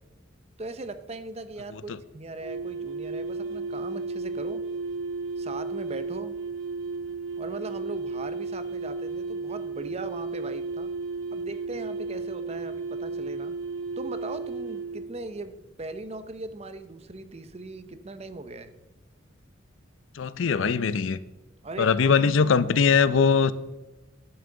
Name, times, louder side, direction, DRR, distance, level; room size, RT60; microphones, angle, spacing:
voice 1, 0.6-4.6 5.4-6.4 7.4-10.9 11.3-13.6 14.0-18.7 21.6-22.0, right 2 dB, 35° right, 11 dB, 0.6 m, -39 dB
sound 1, 2.4-15.1, right 3 dB, 80° right, 1.0 m, -33 dB
voice 2, 20.1-21.2 21.8-23.5, left 5 dB, 80° left, 16 dB, 0.5 m, -21 dB
10.5 x 10.5 x 3.8 m, 1.1 s
head